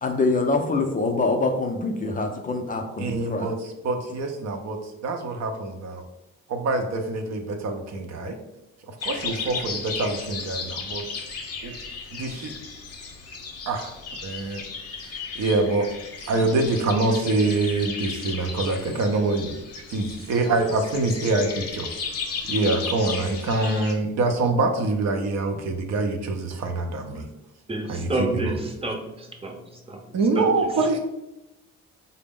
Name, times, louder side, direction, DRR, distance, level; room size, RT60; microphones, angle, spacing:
voice 1, 0.0-3.5, left 3 dB, 30° left, 4 dB, 0.4 m, -25 dB
voice 2, 3.0-6.0 6.5-8.4 8.9-11.0 11.6-11.7 12.1-12.5 13.7-13.9 14.2-14.6 15.3-15.9 16.3-19.6 19.9-21.9 22.5-27.3 27.9-28.6 30.1-31.0, right 2 dB, 60° right, 4 dB, 0.6 m, -25 dB
sound 1, 9.0-23.9, left 5 dB, 55° left, 0.7 m, -35 dB
voice 3, 27.7-29.6 29.9-30.0 30.3-30.5 30.8-30.9, right 2 dB, 20° right, 2 dB, 0.7 m, -29 dB
3.9 x 2.0 x 3.6 m, 0.92 s
cardioid pair, 90°, 30 cm